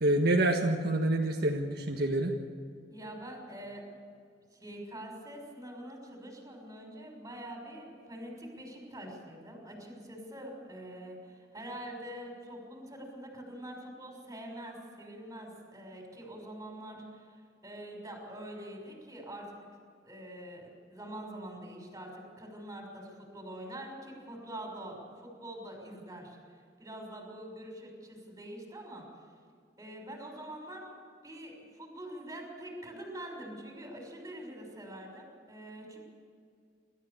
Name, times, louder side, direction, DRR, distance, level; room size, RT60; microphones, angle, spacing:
voice 1, 0.0-2.3, right 1 dB, 60° right, 1 dB, 1.6 m, -27 dB
voice 2, 2.9-3.8 4.5-17.3 17.6-19.6 20.0-26.4 26.8-29.1 29.8-30.9 31.2-36.0, right 1 dB, 20° right, 1 dB, 6.1 m, -45 dB
27.0 x 14.0 x 7.0 m, 2.2 s
head